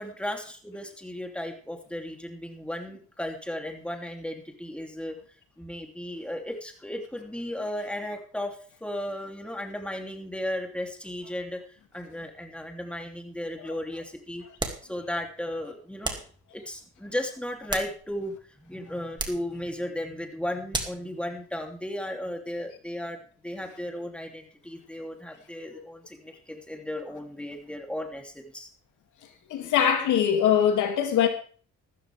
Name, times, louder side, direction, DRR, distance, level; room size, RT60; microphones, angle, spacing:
voice 1, 0.0-5.2 5.6-11.6 11.9-14.4 14.8-16.2 16.5-23.2 23.4-28.7, left 1 dB, 5° left, 2.9 m, -35 dB
sound 1, 14.6-14.9 16.0-16.3 17.4-18.3 19.1-19.5 20.7-21.1, right 2 dB, 15° right, 2.5 m, -33 dB
voice 2, 29.5-31.3, left 9 dB, 80° left, 2.6 m, -23 dB
14.0 x 13.5 x 3.5 m
cardioid pair, 90°, 30 cm